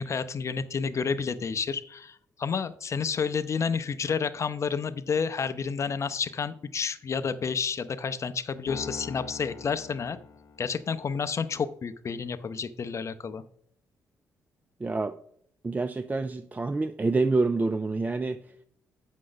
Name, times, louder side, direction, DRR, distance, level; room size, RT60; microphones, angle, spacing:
voice 1, 0.0-10.2 10.6-13.4, left 6 dB, 50° left, 0.6 m, -30 dB
Piano, 8.7-11.1, left 5 dB, 70° left, 0.9 m, -43 dB
voice 2, 14.8-15.2 15.6-18.4, right 3 dB, 25° right, 0.4 m, -27 dB
7.6 x 6.3 x 3.9 m
supercardioid pair, 55°, 7 cm